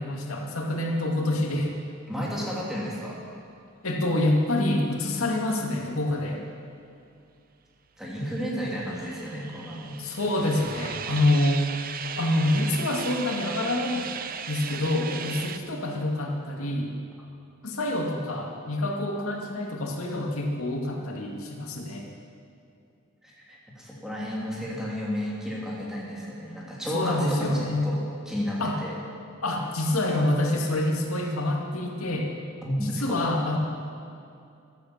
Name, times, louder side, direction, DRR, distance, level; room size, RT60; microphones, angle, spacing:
voice 1, 0.0-1.7 3.8-6.4 10.0-11.6 12.2-14.1 14.5-16.9 17.6-22.1 26.9-27.9 28.6-28.8 29.4-32.3 32.8-33.6, left 1 dB, 85° left, 0 dB, 2.2 m, -26 dB
voice 2, 2.1-3.1 8.0-10.0 23.2-28.0 28.3-29.0 32.6-33.0, equal, ahead, -5 dB, 3.0 m, -32 dB
sound 1, 8.4-15.6, right 7 dB, 40° right, 0.7 m, -37 dB
15.0 x 11.5 x 7.3 m, 2.5 s
head